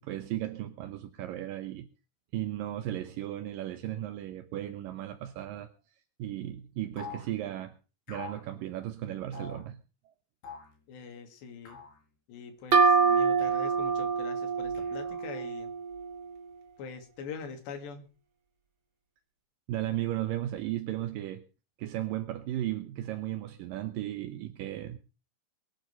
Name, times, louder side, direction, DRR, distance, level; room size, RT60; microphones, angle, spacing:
voice 1, 0.0-1.9 2.3-5.7 6.2-7.7 8.1-9.8 19.7-21.4 21.8-25.0, right 13 dB, 75° right, 2.2 m, -35 dB
sound 1, 7.0-7.3 8.1-8.4 9.3-9.6 10.4-10.8 11.7-12.0 13.4-13.9 14.7-15.4, left 5 dB, 60° left, 7.2 m, -45 dB
voice 2, 10.9-11.8 12.3-15.7 16.8-18.1, left 5 dB, 80° left, 4.6 m, -43 dB
sound 2, 12.7-16.3, right 5 dB, 35° right, 2.2 m, -26 dB
22.5 x 9.4 x 5.3 m
omnidirectional pair, 5.0 m